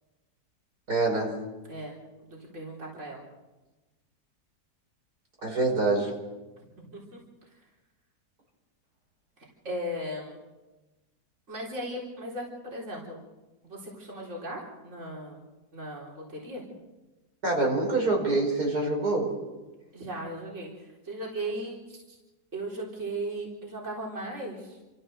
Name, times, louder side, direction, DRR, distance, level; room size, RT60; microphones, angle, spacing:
voice 1, 0.9-1.4 5.4-6.1 17.4-19.3, right 2 dB, 75° right, 0 dB, 5.6 m, -25 dB
voice 2, 1.7-3.3 6.8-7.2 9.6-10.4 11.5-13.2 13.6-15.4 15.7-16.6 19.9-22.2 22.5-24.8, right 1 dB, 45° right, -3 dB, 4.2 m, -37 dB
28.5 x 14.5 x 6.6 m, 1.1 s
omnidirectional pair, 1.7 m